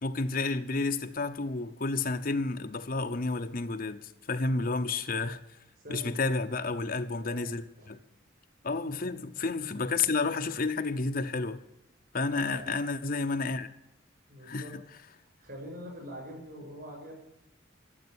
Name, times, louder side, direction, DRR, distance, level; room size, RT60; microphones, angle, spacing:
voice 1, 0.0-5.4 5.9-8.0 8.6-11.6 12.1-13.7 14.4-14.8, left 3 dB, 50° left, 0.8 m, -31 dB
voice 2, 5.8-6.4 7.2-7.5 7.8-7.9 8.8-9.2 12.3-12.8 14.3-14.8 15.2-17.1, equal, 55° right, 7.8 m, -45 dB
14.0 x 8.0 x 9.9 m
head